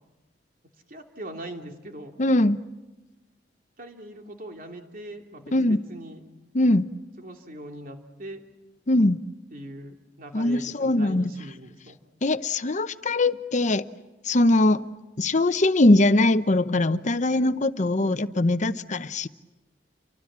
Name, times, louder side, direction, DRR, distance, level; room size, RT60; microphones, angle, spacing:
voice 1, 0.9-2.1 3.8-6.2 7.2-8.4 9.5-12.0, right 1 dB, 55° right, 2.9 m, -41 dB
voice 2, 2.2-2.6 5.5-5.8 6.5-6.9 8.9-9.2 10.3-11.3 12.2-13.8 14.3-14.8 15.2-19.3, left 2 dB, 45° left, 0.8 m, -21 dB
29.5 x 24.0 x 7.5 m
head